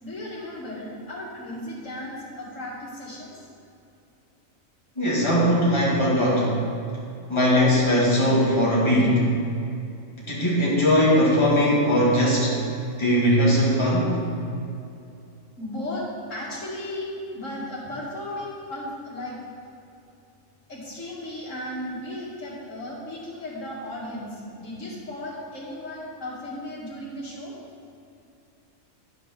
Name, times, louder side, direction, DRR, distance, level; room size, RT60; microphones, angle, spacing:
voice 1, 0.0-3.3 15.5-19.4 20.7-27.5, left 1 dB, 70° left, -5 dB, 2.6 m, -35 dB
voice 2, 5.0-6.5 7.3-9.2 10.2-12.5 13.0-14.1, equal, 20° left, -7 dB, 2.2 m, -20 dB
12.0 x 5.4 x 5.7 m, 2.6 s
omnidirectional pair, 1.4 m